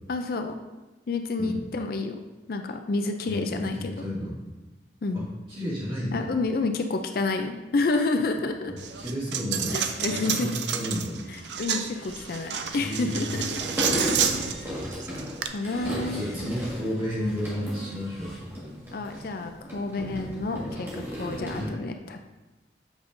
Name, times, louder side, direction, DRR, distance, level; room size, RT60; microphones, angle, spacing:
voice 1, 0.1-0.6 1.1-2.2 2.5-3.9 5.0-5.3 6.1-8.7 9.7-10.5 11.3-13.6 13.9-14.3 15.5-16.2 18.9-22.2, left 3 dB, 55° left, 6 dB, 0.4 m, -29 dB
voice 2, 3.3-4.4 5.1-6.3 8.9-9.8 10.1-11.2 12.8-13.5 15.8-18.3 20.5-20.7 21.5-21.8, equal, 30° right, -7 dB, 2.2 m, -32 dB
Coin (dropping), 8.8-15.5, right 8 dB, 75° right, 0.5 m, -30 dB
sound 1, 11.8-15.1 15.6-18.4, left 1 dB, 5° left, 2.1 m, -49 dB
sound 2, 13.3-21.7, equal, 15° right, 1.6 m, -35 dB
8.0 x 5.2 x 2.6 m, 1.1 s
head